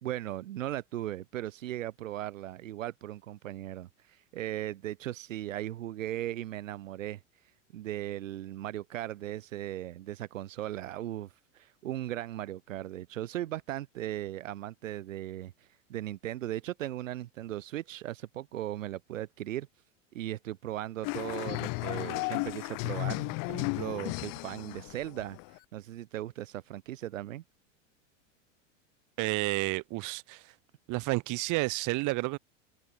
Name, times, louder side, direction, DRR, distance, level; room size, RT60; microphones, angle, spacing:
voice 1, 0.0-7.2 7.7-19.7 20.1-27.4, right 13 dB, 80° right, 1.5 m, -38 dB
sound 1, 21.0-25.6, left 33 dB, 55° left, 3.3 m, -34 dB
voice 2, 29.2-30.4 30.9-32.4, right 25 dB, 50° right, 2.4 m, -30 dB
open air
hypercardioid pair, 100°, 38 cm